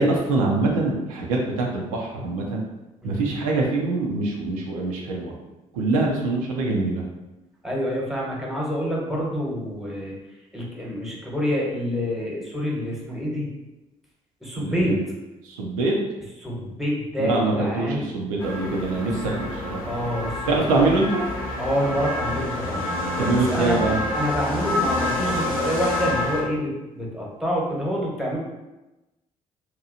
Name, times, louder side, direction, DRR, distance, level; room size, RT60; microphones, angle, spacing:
voice 1, 0.0-2.6 3.0-5.3 5.7-7.0 14.6-15.0 15.4-16.0 17.2-19.8 20.5-21.2 23.2-24.0, right 2 dB, 85° right, -1 dB, 0.4 m, -24 dB
voice 2, 7.6-10.1 10.5-13.5 14.4-15.0 16.4-18.1 19.0-19.4 19.9-20.7 21.6-22.8 23.5-28.4, equal, ahead, -3 dB, 1.0 m, -27 dB
sound 1, 18.4-26.4, left 2 dB, 90° left, 0.5 m, -28 dB
2.8 x 2.2 x 2.5 m, 1.0 s
hypercardioid pair, 50°, 17 cm